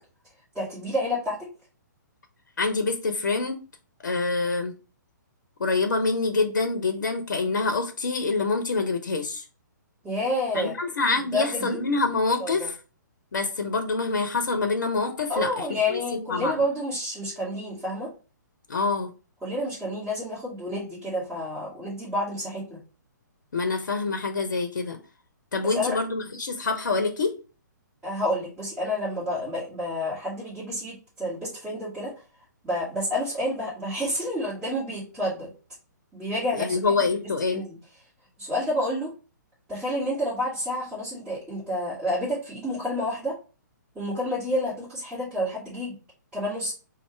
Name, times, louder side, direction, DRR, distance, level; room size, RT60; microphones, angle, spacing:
voice 1, 0.5-1.5 10.0-10.7 11.3-11.8 12.4-12.7 15.3-18.1 19.4-22.8 25.6-26.0 28.0-32.1 32.6-35.5 36.1-36.8 37.2-37.8 38.4-39.1 39.7-43.4 43.9-46.0 46.3-46.7, left 1 dB, 10° right, 2.5 m, -29 dB
voice 2, 2.6-3.6 4.0-4.7 5.6-9.4 10.5-12.7 13.3-16.6 18.7-19.1 23.5-25.0 25.5-27.3 36.5-37.6, left 3 dB, 70° left, 0.8 m, -26 dB
4.2 x 2.6 x 4.5 m
figure-of-eight pair, 130°, 10 cm